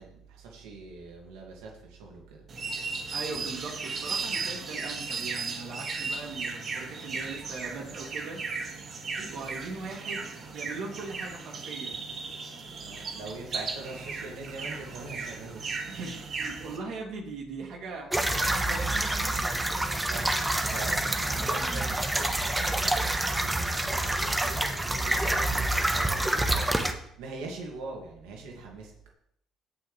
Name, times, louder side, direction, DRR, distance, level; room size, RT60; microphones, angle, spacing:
voice 1, 0.0-2.4 12.8-15.9 20.1-28.9, right 3 dB, 90° right, 0 dB, 2.3 m, -43 dB
sound 1, 2.5-16.8, right 4 dB, 50° right, 2.0 m, -36 dB
voice 2, 3.1-8.4 9.2-12.0 15.9-19.1, right 3 dB, 65° right, 0 dB, 2.9 m, -40 dB
sound 2, 18.1-26.9, right 1 dB, 15° right, 1.2 m, -27 dB
17.0 x 5.8 x 3.4 m, 0.71 s
supercardioid pair, 85°, 0 cm